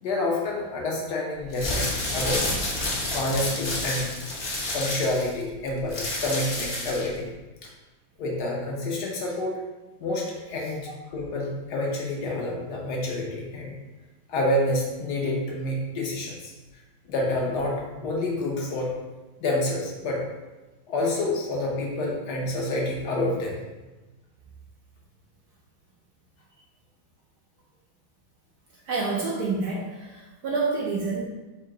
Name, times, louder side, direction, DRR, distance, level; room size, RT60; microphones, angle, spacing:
voice 1, 0.0-2.6 3.1-7.3 7.6-7.7 8.2-9.6 10.0-13.7 14.3-16.5 17.1-18.9 19.4-20.2 20.9-23.6, left 1 dB, 65° left, -2 dB, 1.2 m, -28 dB
sound 1, 1.4-7.2, left 1 dB, 45° left, 0.7 m, -29 dB
voice 2, 28.9-31.3, right 3 dB, 70° right, -3 dB, 0.9 m, -28 dB
3.7 x 2.8 x 4.5 m, 1.1 s
omnidirectional pair, 2.1 m